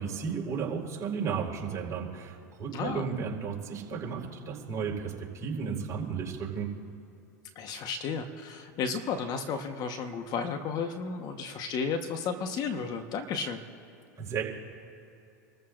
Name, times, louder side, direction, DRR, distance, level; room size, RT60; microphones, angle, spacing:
voice 1, 0.0-6.7 14.2-14.4, right 6 dB, 35° right, -3 dB, 4.3 m, -34 dB
voice 2, 2.7-3.1 7.5-13.6, left 5 dB, 45° left, 6 dB, 1.3 m, -33 dB
28.5 x 14.0 x 2.6 m, 2.7 s
hypercardioid pair, 95°, 9 cm